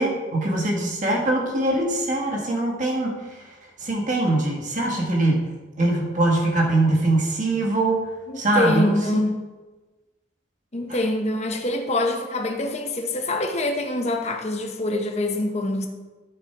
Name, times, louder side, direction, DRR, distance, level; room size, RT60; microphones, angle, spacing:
voice 1, 0.0-3.5 3.8-5.5 5.8-8.1 8.4-8.9 10.9-11.0, right 2 dB, 40° right, -1 dB, 1.7 m, -22 dB
voice 2, 8.3-9.4 10.7-15.9, left 1 dB, 35° left, 3 dB, 0.9 m, -25 dB
11.5 x 4.5 x 4.6 m, 1.2 s
head